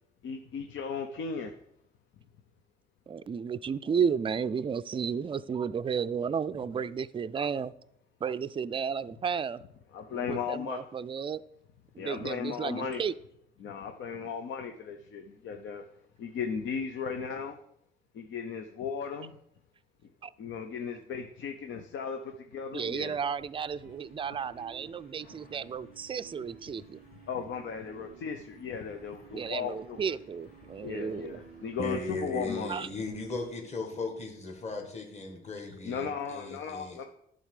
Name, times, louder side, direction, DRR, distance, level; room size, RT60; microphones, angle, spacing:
voice 1, 0.2-1.6 9.9-10.8 12.0-13.0 13.6-15.8 16.2-17.6 18.1-19.4 20.4-23.2 27.3-30.0 30.8-32.7 35.8-37.0, left 6 dB, 70° left, 0.8 m, -36 dB
voice 2, 3.1-7.7 8.2-9.6 10.1-11.4 11.9-13.1 20.2-20.3 22.7-27.0 29.3-31.4 32.7-32.9, right 6 dB, 25° right, 0.4 m, -33 dB
sound 1, 23.1-33.5, left 1 dB, 85° left, 2.4 m, -60 dB
sound 2, 23.9-34.2, right 9 dB, 85° right, 0.5 m, -55 dB
voice 3, 31.8-37.1, left 3 dB, 35° left, 2.0 m, -37 dB
11.0 x 4.0 x 6.7 m
cardioid pair, 90°, 20 cm